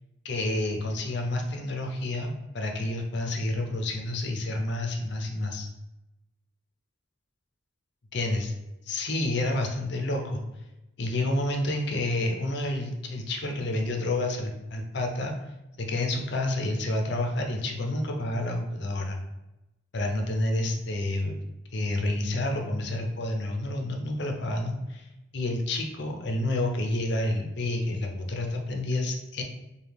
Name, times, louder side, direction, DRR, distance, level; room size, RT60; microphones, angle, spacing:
voice 1, 0.2-5.7 8.1-8.5 8.9-10.4 11.0-15.3 15.8-19.2 19.9-21.4 21.7-25.1 25.3-29.4, left 1 dB, 55° left, 2 dB, 0.6 m, -29 dB
4.9 x 2.3 x 3.4 m, 0.96 s
head